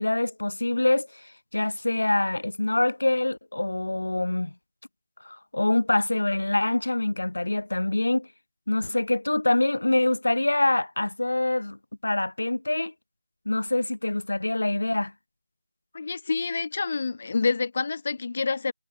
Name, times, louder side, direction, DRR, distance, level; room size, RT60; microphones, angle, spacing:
voice 1, 0.0-4.5 5.2-8.3 8.7-12.9 13.4-15.1, left 2 dB, 80° left, 1.2 m, -25 dB
voice 2, 15.9-18.7, left 4 dB, 30° left, 1.5 m, -27 dB
figure-of-eight pair, 175°, 0 cm